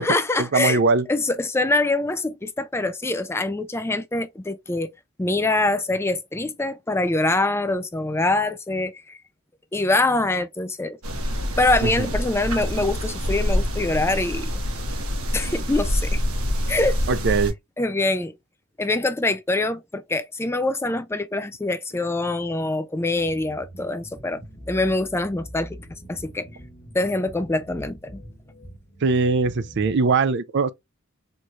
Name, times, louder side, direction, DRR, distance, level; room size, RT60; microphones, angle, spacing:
voice 1, 0.0-0.8 1.1-4.9 5.2-9.2 9.7-11.0 11.6-14.5 15.3-16.2 16.7-17.0 17.8-18.3 18.8-24.4 24.7-25.8 26.1-26.5 26.9-28.2, left 2 dB, 10° left, 0.4 m, -24 dB
voice 2, 0.5-1.1 11.8-12.1 17.1-17.5 29.0-30.7, right 4 dB, 55° right, 0.5 m, -21 dB
sound 1, 11.0-17.5, equal, 85° right, 1.5 m, -26 dB
sound 2, 23.2-30.0, equal, 30° left, 1.3 m, -43 dB
4.5 x 3.1 x 2.4 m
head